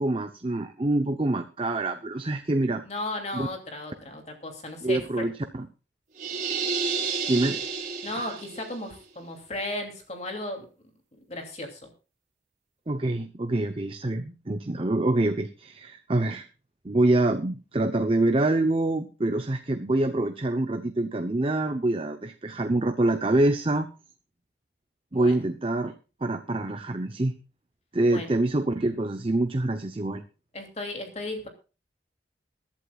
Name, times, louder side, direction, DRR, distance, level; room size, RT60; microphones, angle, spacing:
voice 1, 0.0-2.8 3.3-3.5 4.8-5.7 7.3-7.6 8.1-8.3 12.9-16.5 16.8-23.9 25.1-25.9 26.2-27.3 27.9-30.2, right 2 dB, 30° right, 7 dB, 0.8 m, -26 dB
voice 2, 2.8-5.2 8.0-10.7 11.3-11.9 25.1-25.4 28.1-28.3 30.5-31.5, left 1 dB, 40° left, 3 dB, 2.8 m, -35 dB
sound 1, 6.2-8.7, right 5 dB, 45° right, 4.3 m, -30 dB
22.5 x 11.5 x 2.4 m, 0.33 s
head